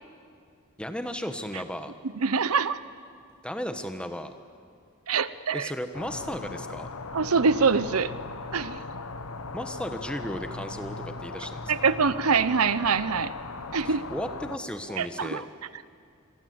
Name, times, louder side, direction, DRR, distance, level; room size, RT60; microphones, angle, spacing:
voice 1, 0.8-1.9 3.4-4.3 5.5-6.9 9.5-11.9 13.8-15.5, equal, 5° left, 8 dB, 1.2 m, -35 dB
voice 2, 2.2-2.8 5.1-5.7 7.1-8.1 8.5-8.8 11.7-13.3 13.7-14.0 15.0-15.4, right 5 dB, 90° right, 15 dB, 0.8 m, -24 dB
sound 1, 5.9-14.6, left 3 dB, 90° left, 1.3 m, -38 dB
27.5 x 22.5 x 8.0 m, 2.3 s
head